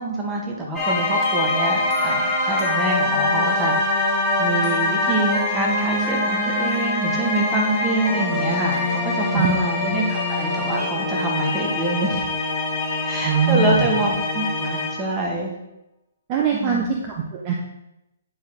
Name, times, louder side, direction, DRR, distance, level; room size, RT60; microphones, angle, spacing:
voice 1, 0.0-12.2 13.0-15.6 16.5-16.9, right 1 dB, 15° right, -2 dB, 1.7 m, -26 dB
sound 1, 0.8-15.2, left 2 dB, 5° left, 1.5 m, -24 dB
voice 2, 13.2-13.9 16.3-17.5, right 7 dB, 35° right, 0 dB, 0.9 m, -22 dB
9.1 x 4.7 x 3.7 m, 0.89 s
figure-of-eight pair, 130°, 0 cm